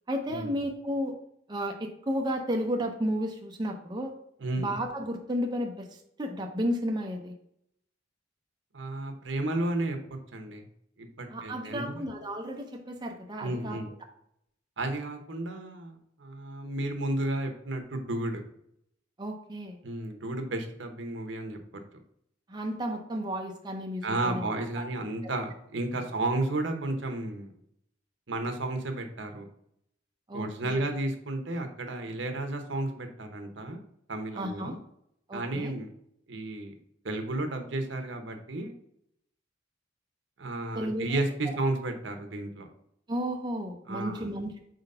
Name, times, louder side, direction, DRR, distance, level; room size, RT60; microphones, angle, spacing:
voice 1, 0.1-1.2 1.5-4.1 4.6-7.3 11.3-13.8 19.2-19.8 22.5-24.5 24.8-24.9 25.9-26.0 30.3-30.9 34.3-34.7 35.3-35.7 40.7-41.1 43.1-44.6, equal, 25° right, 2 dB, 0.6 m, -33 dB
voice 2, 8.7-10.0 10.3-10.7 11.0-12.1 13.4-13.9 14.8-18.4 19.8-21.6 24.0-27.5 28.3-29.5 30.3-33.8 34.1-34.8 35.3-35.9 36.3-36.7 37.0-38.7 40.4-42.7 43.9-44.2, right 2 dB, 70° right, 5 dB, 1.0 m, -32 dB
4.5 x 3.9 x 5.4 m, 0.74 s
head